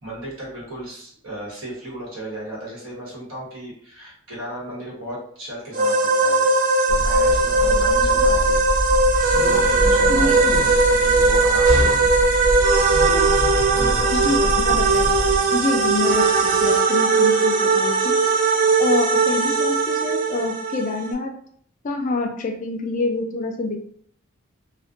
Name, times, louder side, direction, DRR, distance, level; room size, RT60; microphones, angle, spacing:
voice 1, 0.0-6.5 6.9-8.6 9.3-12.1 13.7-14.5, right 1 dB, 85° right, -5 dB, 1.1 m, -35 dB
sound 1, 5.7-21.1, right 3 dB, 40° right, 0.3 m, -19 dB
sound 2, 6.9-15.4, equal, 5° right, 0.8 m, -26 dB
voice 2, 10.1-10.4 14.1-15.1 15.5-18.2 18.8-21.3 21.8-23.8, left 3 dB, 40° left, 4 dB, 0.3 m, -26 dB
sound 3, 10.2-16.8, right 1 dB, 55° right, 0.7 m, -33 dB
2.4 x 2.1 x 2.4 m, 0.62 s
head